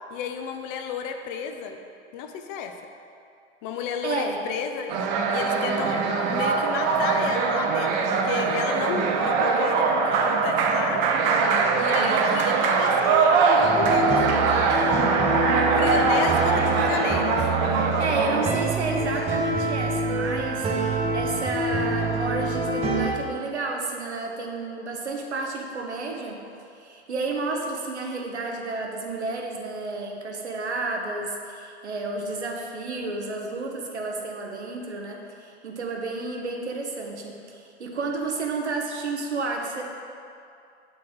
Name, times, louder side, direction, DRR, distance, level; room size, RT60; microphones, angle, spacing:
voice 1, 0.1-1.8 2.1-2.7 3.6-11.0 11.8-15.0 15.8-17.5, left 6 dB, 35° left, 5 dB, 0.5 m, -32 dB
voice 2, 4.0-4.4 11.9-12.4 17.8-26.4 26.8-39.8, right 3 dB, 85° right, 1 dB, 0.9 m, -31 dB
sound 1, 4.9-18.6, right 4 dB, 45° right, 0.6 m, -22 dB
sound 2, 13.6-23.1, right 2 dB, 20° right, 0.9 m, -26 dB
7.4 x 3.8 x 3.8 m, 2.5 s
hypercardioid pair, 100°, 33 cm